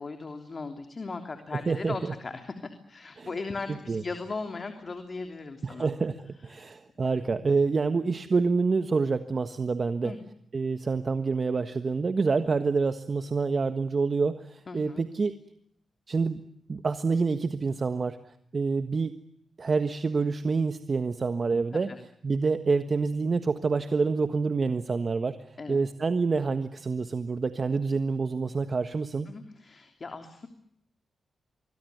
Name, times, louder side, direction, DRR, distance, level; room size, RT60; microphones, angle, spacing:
voice 1, 0.0-5.9 6.5-6.7 10.0-10.2 14.7-15.0 21.7-22.0 25.6-25.8 29.3-30.5, left 3 dB, 45° left, 6 dB, 3.1 m, -38 dB
voice 2, 1.5-2.1 3.2-3.3 3.9-4.0 5.6-10.1 10.5-15.4 16.1-16.4 16.7-18.2 18.5-19.1 19.6-21.9 22.2-29.3, right 4 dB, 50° right, 9 dB, 1.5 m, -27 dB
25.5 x 21.0 x 9.4 m, 0.72 s
cardioid pair, 55°, 0 cm